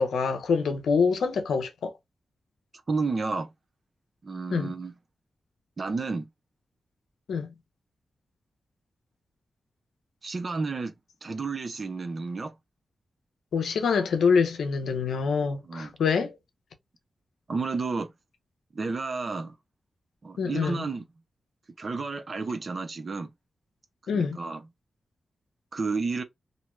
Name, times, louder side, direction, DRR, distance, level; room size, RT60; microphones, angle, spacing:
voice 1, 0.0-1.9 4.5-4.7 7.3-7.5 13.5-16.4 20.4-20.8 24.1-24.4, left 5 dB, 85° left, 0.6 m, -25 dB
voice 2, 2.9-3.5 4.2-4.9 5.8-6.3 10.2-10.9 11.2-12.5 15.6-15.9 17.5-18.1 18.7-19.5 20.2-21.0 21.8-23.3 24.1-24.7 25.7-26.2, right 4 dB, 55° right, 0.6 m, -31 dB
2.6 x 2.1 x 3.0 m
cardioid pair, 45°, 0 cm